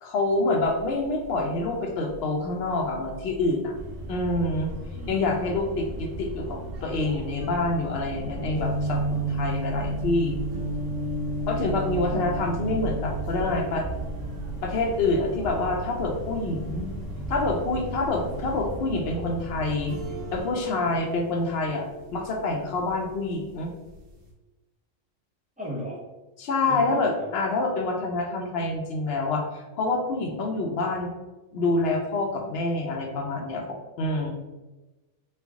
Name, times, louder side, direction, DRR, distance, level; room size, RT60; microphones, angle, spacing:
voice 1, 0.0-3.7 4.1-4.7 5.1-10.4 11.5-13.9 14.6-16.9 17.3-19.9 20.3-21.8 22.1-23.7 26.4-31.1 31.5-34.3, left 2 dB, 60° left, 2 dB, 0.7 m, -27 dB
sound 1, 0.6-18.7, right 4 dB, 80° left, 1.1 m, -41 dB
sound 2, 3.7-20.4, right 2 dB, 65° right, 0.6 m, -37 dB
voice 2, 4.9-5.7 20.6-20.9 25.6-26.0 26.6-27.3, equal, 10° right, -5 dB, 0.4 m, -37 dB
sound 3, 8.6-24.3, right 1 dB, 80° right, 1.2 m, -35 dB
3.3 x 2.3 x 3.5 m, 1.1 s
omnidirectional pair, 1.3 m